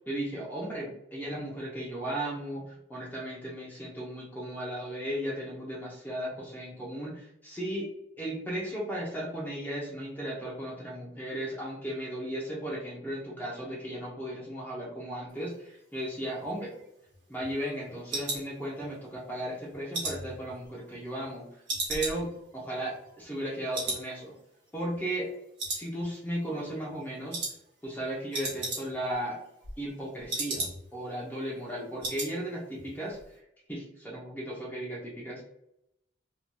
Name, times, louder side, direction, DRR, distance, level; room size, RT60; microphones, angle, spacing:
voice 1, 0.1-7.9 8.2-16.7 17.3-21.4 21.9-24.3 24.7-25.3 25.7-27.4 27.8-29.4 29.8-33.2 33.7-35.5, right 1 dB, 10° left, -4 dB, 0.6 m, -36 dB
sound 1, 16.4-19.2 19.5-21.3 21.7-23.5 23.7-24.1 24.4-24.5 24.9-25.3 25.6-26.4 26.7-26.9 27.3-27.6 27.9-28.0 28.2-29.1 29.4-31.0 31.4-31.5 31.7-32.3 32.6-32.9 33.2-33.3, right 2 dB, 55° right, 1.0 m, -36 dB
2.9 x 2.7 x 2.2 m, 0.80 s
head